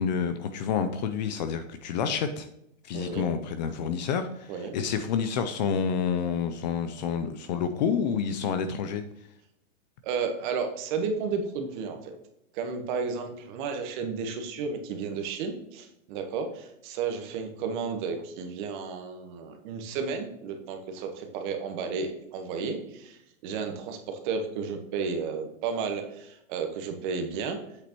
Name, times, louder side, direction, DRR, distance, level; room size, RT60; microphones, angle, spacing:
voice 1, 0.0-2.5 2.8-9.0, left 7 dB, 35° left, 10 dB, 0.5 m, -29 dB
voice 2, 2.9-3.3 4.5-4.7 10.0-12.1 12.5-27.6, right 5 dB, 40° right, 5 dB, 1.3 m, -33 dB
8.1 x 6.5 x 3.0 m, 0.82 s
hypercardioid pair, 150°, 39 cm